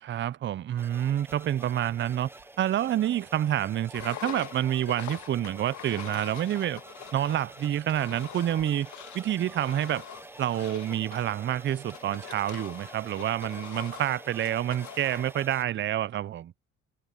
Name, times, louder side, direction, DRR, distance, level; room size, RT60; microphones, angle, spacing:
voice 1, 0.0-2.3 2.6-6.8 7.1-8.9 9.1-10.0 10.4-16.5, right 11 dB, 40° right, 0.4 m, -28 dB
sound 1, 0.7-9.4, right 12 dB, 80° right, 2.3 m, -65 dB
sound 2, 0.8-15.6, right 2 dB, 10° right, 0.7 m, -48 dB
Engine, 3.9-15.3, left 11 dB, 75° left, 1.5 m, -44 dB
cardioid pair, 90°, 30 cm